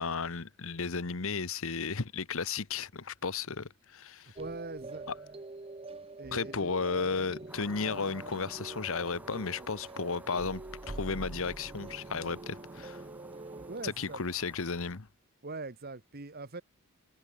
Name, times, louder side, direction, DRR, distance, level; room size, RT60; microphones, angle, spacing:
voice 1, 0.0-4.3 6.3-13.0 13.8-15.1, left 4 dB, 65° left, 1.1 m, -34 dB
voice 2, 4.2-5.1 6.2-6.7 13.7-14.2 15.4-16.6, right 3 dB, 45° right, 1.3 m, -42 dB
sound 1, 4.4-13.8, right 2 dB, 25° right, 0.8 m, -45 dB
sound 2, 7.5-15.0, right 1 dB, 5° right, 2.1 m, -54 dB
head